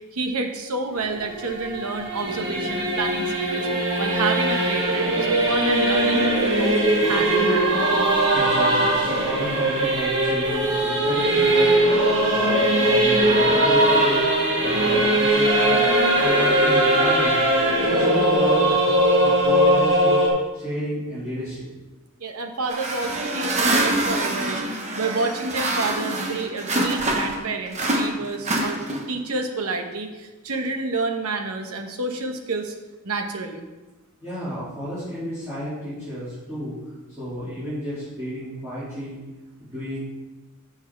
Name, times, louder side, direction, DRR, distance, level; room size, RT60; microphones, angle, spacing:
voice 1, 0.1-3.7 4.0-6.2 6.6-6.8 7.0-7.8 22.2-28.8 29.1-32.7 33.0-33.7, right 3 dB, 80° right, 4 dB, 1.1 m, -29 dB
Singing / Musical instrument, 0.9-20.3, right 1 dB, 55° right, 2.1 m, -20 dB
voice 2, 8.3-11.7 12.3-14.2 14.6-15.8 16.1-17.4 17.8-18.9 19.2-20.2 20.5-21.7 34.2-36.8 37.2-39.2 39.6-40.0, equal, 10° right, -14 dB, 2.9 m, -32 dB
sound 1, 22.7-27.4 27.7-29.2, right 1 dB, 30° right, 1.0 m, -25 dB
7.2 x 7.0 x 4.6 m, 1.1 s
head